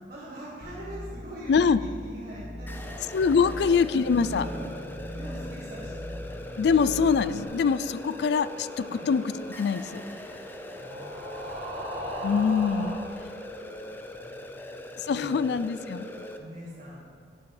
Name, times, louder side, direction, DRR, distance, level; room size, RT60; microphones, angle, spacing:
voice 1, 0.1-3.0 4.3-6.3 8.9-9.1 10.7-12.6 13.9-15.4 15.8-17.0, equal, 55° right, -9 dB, 1.8 m, -45 dB
sound 1, 0.6-7.4, equal, 45° left, 1.9 m, -40 dB
voice 2, 1.5-1.8 3.1-4.4 6.6-9.2 9.6-10.0 12.2-13.0 15.0-16.1, left 5 dB, 60° left, 15 dB, 0.3 m, -24 dB
sound 2, 2.7-16.4, left 1 dB, 10° left, 0.5 m, -41 dB
sound 3, 6.3-13.1, equal, 30° right, 1.7 m, -40 dB
11.0 x 10.5 x 3.3 m, 2.3 s
head